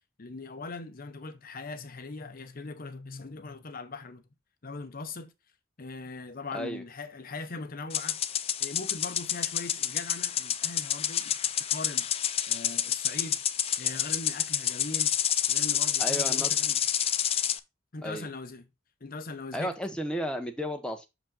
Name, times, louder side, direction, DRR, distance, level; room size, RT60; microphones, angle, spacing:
voice 1, 0.2-4.2 4.6-5.3 5.8-8.2 8.6-11.4 11.7-12.1 12.5-13.4 13.8-15.2 15.5-16.8 17.9-18.7 19.0-19.7, left 3 dB, 45° left, 0.8 m, -40 dB
voice 2, 6.5-6.8 16.0-16.6 18.0-18.3 19.5-21.1, equal, 5° left, 1.0 m, -33 dB
sound 1, 7.9-17.6, left 10 dB, 30° left, 0.4 m, -29 dB
6.3 x 5.1 x 3.7 m
head